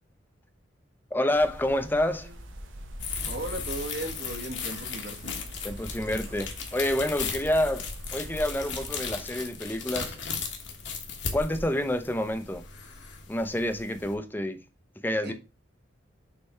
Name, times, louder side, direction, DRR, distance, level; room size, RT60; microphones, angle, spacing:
voice 1, 1.1-2.3 5.6-10.2 11.3-12.6 13.3-14.6 15.0-15.3, left 1 dB, 10° left, 0.6 m, -28 dB
sound 1, 1.3-8.9, right 1 dB, 85° right, 1.0 m, -43 dB
sound 2, 3.0-14.1, left 5 dB, 65° left, 1.3 m, -37 dB
voice 2, 3.3-5.4 15.2-15.3, right 1 dB, 55° right, 1.3 m, -36 dB
6.5 x 3.4 x 4.3 m
head